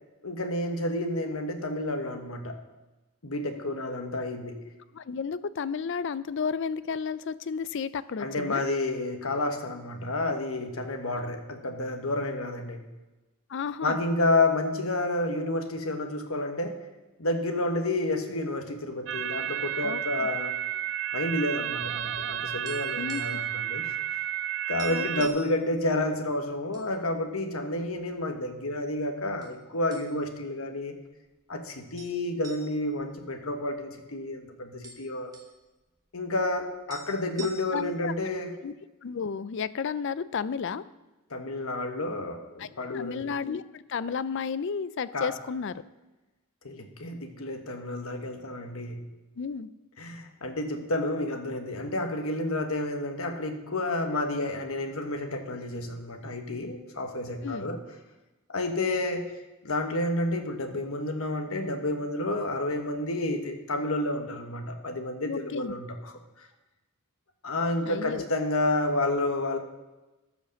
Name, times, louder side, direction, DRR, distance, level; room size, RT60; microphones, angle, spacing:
voice 1, 0.2-2.6 3.2-4.6 8.2-12.9 13.8-16.8 17.2-20.6 21.1-24.2 24.7-31.0 31.5-35.3 36.1-38.6 41.3-43.3 45.1-45.3 46.6-49.1 50.0-57.8 58.5-59.3 59.6-66.5 67.4-69.6, left 2 dB, 70° left, 5 dB, 1.3 m, -30 dB
voice 2, 4.9-8.7 13.5-14.0 19.8-20.3 23.0-23.4 24.9-25.4 37.4-38.1 38.6-38.7 39.0-40.8 42.6-42.7 42.9-45.7 49.4-49.7 57.4-57.7 65.2-65.7 67.8-68.3, left 6 dB, 55° left, 16 dB, 0.4 m, -32 dB
sound 1, 19.1-25.3, right 11 dB, 55° right, 0.4 m, -32 dB
sound 2, 22.6-23.5 23.8-24.0 24.3-24.4 24.8-25.5 26.2-26.9 27.3-27.4 28.1-28.7 29.4-29.6 29.9-30.4 30.8-30.9 32.0-34.0 34.3-34.4 34.6-35.5 36.6-36.7 36.9-38.0, right 5 dB, 15° right, 1.4 m, -46 dB
14.0 x 5.2 x 6.4 m, 1.1 s
head